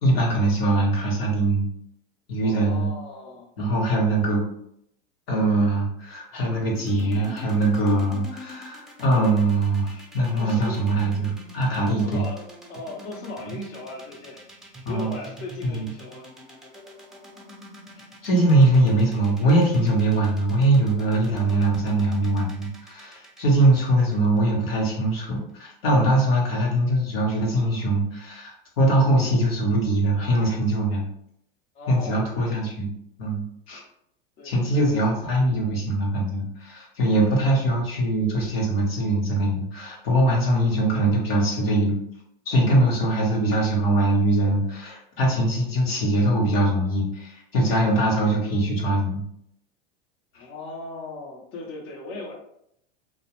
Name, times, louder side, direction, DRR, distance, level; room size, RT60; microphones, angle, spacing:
voice 1, 0.0-1.7 2.3-2.9 3.6-4.4 5.3-12.3 14.8-15.1 15.6-15.9 18.2-31.0 31.9-32.9 33.2-33.8 34.4-41.9 42.5-49.2 50.3-50.4, right 1 dB, 90° left, -3 dB, 0.9 m, -22 dB
voice 2, 2.4-3.5 10.4-10.8 11.9-14.5 14.8-16.6 21.1-21.9 31.7-32.6 34.4-34.9 50.4-52.3, left 2 dB, 40° left, 0 dB, 0.6 m, -38 dB
sound 1, 6.7-24.9, left 1 dB, ahead, 0.5 m, -44 dB
2.3 x 2.1 x 2.8 m, 0.75 s
hypercardioid pair, 105°, 30 cm